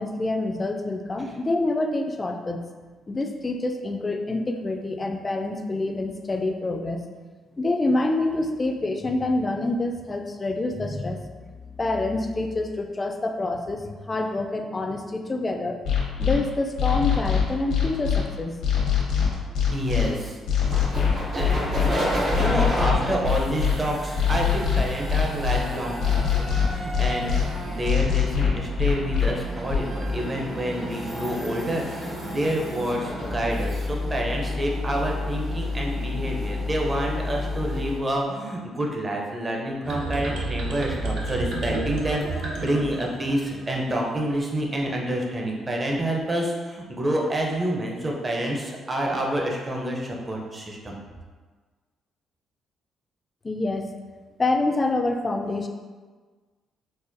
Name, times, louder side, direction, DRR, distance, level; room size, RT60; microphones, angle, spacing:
voice 1, 0.0-2.6 3.1-7.0 7.6-11.3 11.8-15.8 16.2-18.6 53.4-53.9 54.4-55.7, left 2 dB, 25° left, 4 dB, 0.3 m, -26 dB
sound 1, 15.8-16.3 16.8-18.2 18.6-20.0 20.5-21.9 22.3-23.7 24.2-25.6 26.0-27.4 27.8-29.3 29.7-29.8, left 8 dB, 85° left, 0.9 m, -22 dB
voice 2, 19.7-20.4 21.3-51.0, right 1 dB, 25° right, -1 dB, 0.6 m, -28 dB
sound 2, 20.7-38.0, left 1 dB, 60° right, 1.0 m, -30 dB
sound 3, 39.8-43.8, right 2 dB, 80° right, 0.6 m, -30 dB
4.0 x 2.2 x 2.6 m, 1.4 s
cardioid pair, 90°, 0 cm